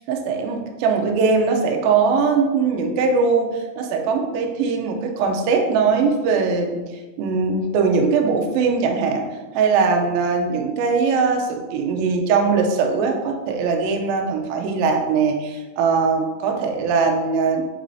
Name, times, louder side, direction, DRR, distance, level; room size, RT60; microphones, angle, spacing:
voice 1, 0.1-9.2 9.5-17.7, right 5 dB, 75° right, 2 dB, 2.3 m, -21 dB
9.5 x 3.9 x 2.7 m, 1.2 s
omnidirectional pair, 4.7 m